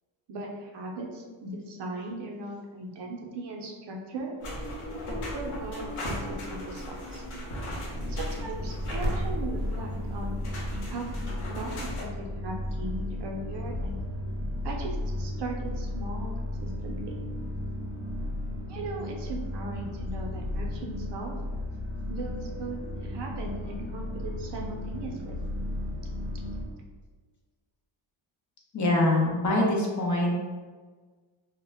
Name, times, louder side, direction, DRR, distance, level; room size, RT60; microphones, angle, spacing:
voice 1, 0.3-4.3 5.3-7.2 8.1-10.4 10.9-11.2 11.5-13.9 14.6-17.1 18.7-21.3 22.1-25.3, right 2 dB, 60° right, 0 dB, 0.6 m, -38 dB
sound 1, 4.4-12.0, equal, 85° left, 0.8 m, -35 dB
sound 2, 7.9-26.6, left 1 dB, 60° left, 0.9 m, -34 dB
voice 2, 28.7-30.3, left 1 dB, 40° left, -2 dB, 0.6 m, -24 dB
2.1 x 2.1 x 3.3 m, 1.4 s
cardioid pair, 110°, 48 cm